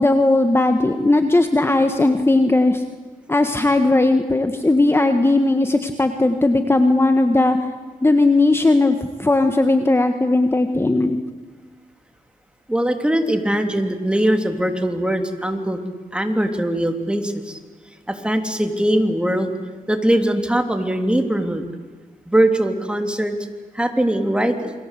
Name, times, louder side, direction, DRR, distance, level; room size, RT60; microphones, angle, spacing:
voice 1, 0.0-2.8 3.3-7.7 8.0-11.2, left 2 dB, 15° left, 7 dB, 1.6 m, -17 dB
voice 2, 12.7-15.8 16.1-17.6 18.1-19.5 19.9-21.6 22.2-23.4 23.7-24.7, right 1 dB, 5° right, 5 dB, 3.2 m, -21 dB
29.0 x 23.0 x 8.4 m, 1.3 s
cardioid pair, 85°, 15 cm